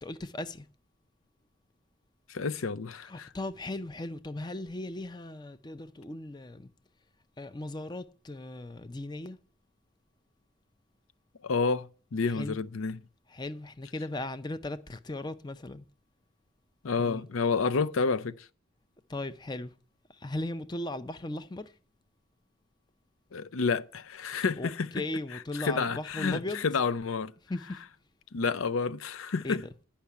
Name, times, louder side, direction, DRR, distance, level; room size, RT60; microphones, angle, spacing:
voice 1, 0.0-0.7 3.0-6.7 7.4-9.4 12.2-12.6 13.3-15.8 17.0-17.3 19.1-19.7 20.1-21.8 24.6-26.6 27.5-27.8 29.4-29.7, left 2 dB, 20° left, 0.4 m, -37 dB
voice 2, 2.3-3.3 11.4-13.0 16.8-18.5 23.3-24.9 25.6-27.3 28.3-29.6, left 4 dB, 80° left, 0.6 m, -29 dB
10.0 x 5.8 x 8.2 m
head